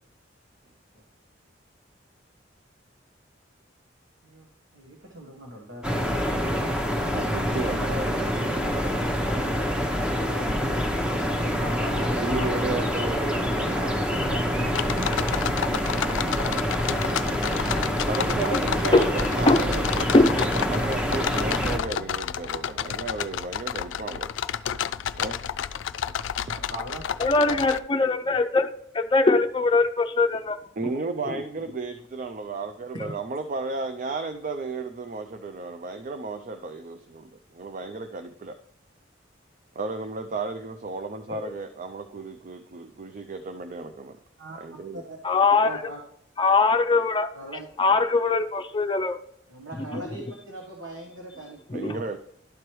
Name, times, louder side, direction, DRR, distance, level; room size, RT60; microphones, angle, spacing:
voice 1, 4.7-6.4 10.3-10.6 11.2-13.4 17.2-17.6 26.5-27.0 44.4-45.2 45.6-46.0 47.3-47.6 49.5-51.6, right 1 dB, 80° right, 0 dB, 1.3 m, -40 dB
sound 1, 5.8-21.8, equal, 5° right, 0.8 m, -26 dB
voice 2, 7.1-8.8 12.2-15.0 18.1-24.3 25.2-25.4 26.2-26.3 30.8-38.6 39.8-44.2 44.6-45.0 51.7-52.2, right 3 dB, 45° right, 8 dB, 0.4 m, -34 dB
sound 2, 14.7-27.8, left 9 dB, 85° left, 0.3 m, -31 dB
voice 3, 20.1-20.4 27.2-30.6 31.3-31.4 41.3-41.5 45.2-45.8 46.4-47.3 47.8-49.2 49.9-50.0 51.7-52.0, left 3 dB, 25° left, 6 dB, 0.5 m, -21 dB
12.0 x 4.6 x 3.1 m, 0.72 s
head